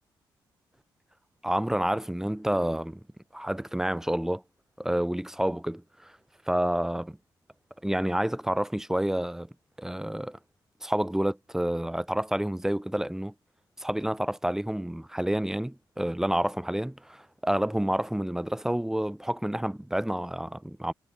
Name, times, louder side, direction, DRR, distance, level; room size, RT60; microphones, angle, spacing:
voice 1, 1.4-3.0 3.3-4.4 4.8-6.1 6.5-7.2 7.8-9.5 9.8-10.4 10.8-13.3 13.8-20.9, right 1 dB, 5° right, 1.4 m, -29 dB
cardioid pair, 90°, 8 cm